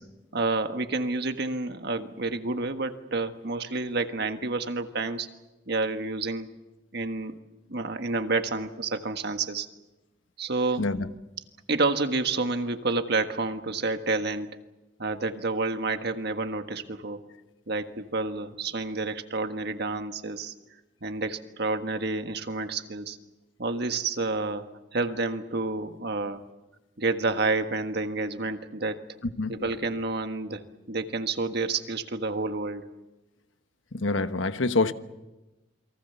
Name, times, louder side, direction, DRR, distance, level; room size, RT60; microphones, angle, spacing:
voice 1, 0.3-5.3 5.7-6.5 6.9-7.4 7.7-9.7 10.4-11.0 11.7-14.5 15.0-17.2 17.7-20.5 21.0-23.2 23.6-24.6 24.9-26.4 27.0-29.0 29.5-32.8, right 3 dB, 60° right, 1.6 m, -29 dB
voice 2, 33.9-34.9, left 3 dB, 90° left, 1.2 m, -26 dB
28.5 x 23.0 x 7.0 m
head